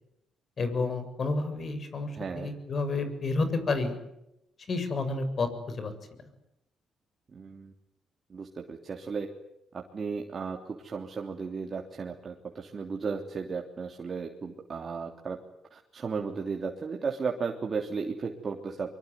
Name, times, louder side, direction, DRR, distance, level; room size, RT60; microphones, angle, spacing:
voice 1, 0.6-2.1 2.4-4.0 4.7-5.9, left 3 dB, 50° left, 10 dB, 7.3 m, -30 dB
voice 2, 2.1-2.5 7.3-7.7 8.3-9.3 9.7-15.4 15.7-18.9, right 5 dB, 45° right, 1 dB, 3.2 m, -35 dB
24.0 x 24.0 x 9.6 m, 0.85 s
supercardioid pair, 70°, 0 cm